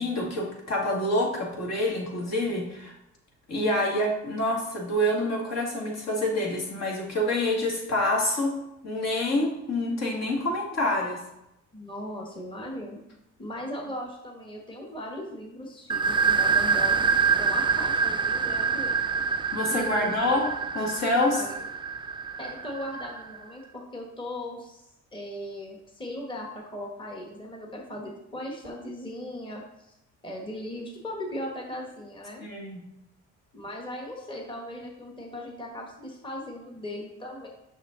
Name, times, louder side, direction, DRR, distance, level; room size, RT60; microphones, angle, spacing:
voice 1, 0.0-2.9 3.5-8.5 8.8-11.2 19.5-20.5 20.7-21.4 32.4-32.8, left 1 dB, 60° left, -1 dB, 2.1 m, -27 dB
voice 2, 11.7-13.0 13.4-17.1 17.4-19.0 19.7-20.4 21.2-21.5 22.4-24.8 25.1-29.9 30.2-32.4 33.5-37.5, left 1 dB, 15° left, 0 dB, 1.3 m, -38 dB
sound 1, 15.9-23.4, right 5 dB, 15° right, 0.4 m, -26 dB
6.3 x 5.9 x 3.9 m, 0.86 s
cardioid pair, 90°, 30 cm